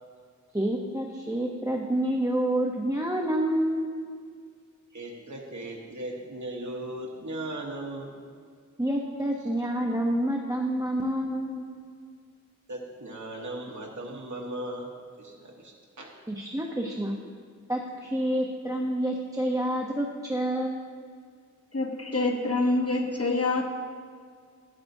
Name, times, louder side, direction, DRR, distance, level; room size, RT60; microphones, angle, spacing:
voice 1, 0.5-3.9 8.8-11.6 16.3-17.2 17.7-20.8, right 1 dB, 10° right, 0 dB, 0.7 m, -28 dB
voice 2, 4.9-8.1 12.7-14.9 15.2-16.1, right 1 dB, 65° right, -1 dB, 1.1 m, -37 dB
voice 3, 21.7-23.6, left 2 dB, 50° left, 3 dB, 0.9 m, -26 dB
13.0 x 9.2 x 2.7 m, 2.1 s
wide cardioid pair, 45°, 31 cm